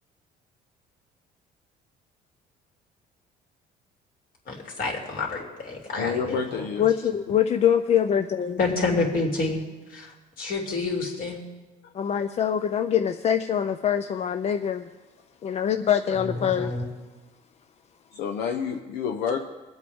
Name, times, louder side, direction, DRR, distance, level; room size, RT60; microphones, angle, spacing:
voice 1, 4.5-6.7 8.6-9.6 9.9-11.4 16.2-16.8, left 3 dB, 60° left, -1 dB, 2.9 m, -28 dB
voice 2, 6.0-6.8 11.8-11.9 18.1-19.4, left 6 dB, 80° left, 3 dB, 0.8 m, -29 dB
voice 3, 6.8-8.6 11.9-14.9 15.4-16.7, left 9 dB, 40° left, 8 dB, 0.5 m, -24 dB
22.0 x 8.0 x 3.6 m, 1.2 s
cardioid pair, 110°, 17 cm